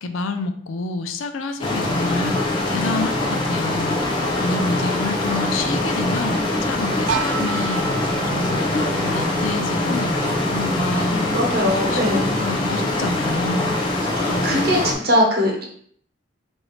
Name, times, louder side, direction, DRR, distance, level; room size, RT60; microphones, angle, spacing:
voice 1, 0.0-11.3 11.6-14.0 14.3-14.8, left 3 dB, 85° left, 8 dB, 0.4 m, -29 dB
sound 1, 1.6-14.9, left 2 dB, 25° left, 0.6 m, -23 dB
sound 2, 7.1-12.9, right 5 dB, 70° right, 0.3 m, -32 dB
voice 2, 11.1-12.3 14.2-14.8 15.0-15.6, left 1 dB, 50° right, 0 dB, 0.9 m, -21 dB
4.7 x 2.7 x 3.2 m, 0.63 s
head